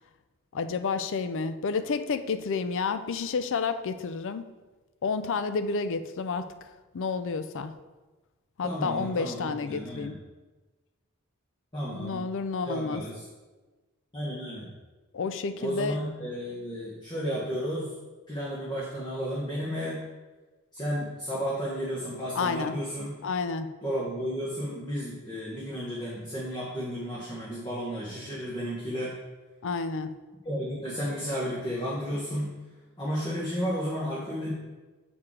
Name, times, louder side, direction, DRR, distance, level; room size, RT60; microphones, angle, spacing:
voice 1, 0.5-4.5 5.0-6.5 6.9-7.7 8.6-10.2 11.9-13.0 15.1-16.0 22.4-22.7 23.2-23.7 29.6-30.1, left 4 dB, 60° left, 11 dB, 0.5 m, -30 dB
voice 2, 8.6-10.1 11.7-12.3 12.6-13.2 14.1-14.7 15.6-17.9 18.3-20.1 20.7-23.1 23.8-29.1 30.4-32.5 33.0-34.5, equal, 20° left, -6 dB, 1.2 m, -33 dB
7.2 x 4.8 x 4.8 m, 1.2 s
head